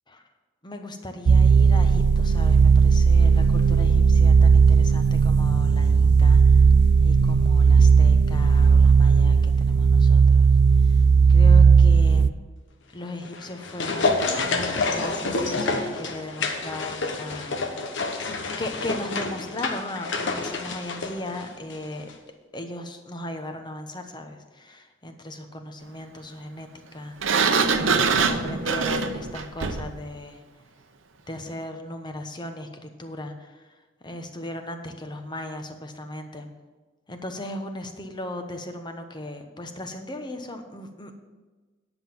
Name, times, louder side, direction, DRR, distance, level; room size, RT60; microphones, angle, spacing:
voice 1, 0.6-6.7 7.0-10.5 10.8-11.0 11.3-12.3 12.9-17.9 18.6-22.1 22.5-30.4 31.3-33.7 34.0-36.5 37.1-41.2, left 1 dB, 25° left, 6 dB, 1.0 m, -37 dB
sound 1, 1.3-12.3, right 5 dB, 60° right, 0.4 m, -16 dB
sound 2, 13.2-21.8 22.1-22.2, left 3 dB, 65° left, 1.1 m, -28 dB
Sliding door, 27.2-30.0, right 5 dB, 80° right, 0.8 m, -23 dB
9.8 x 5.9 x 7.2 m, 1.3 s
head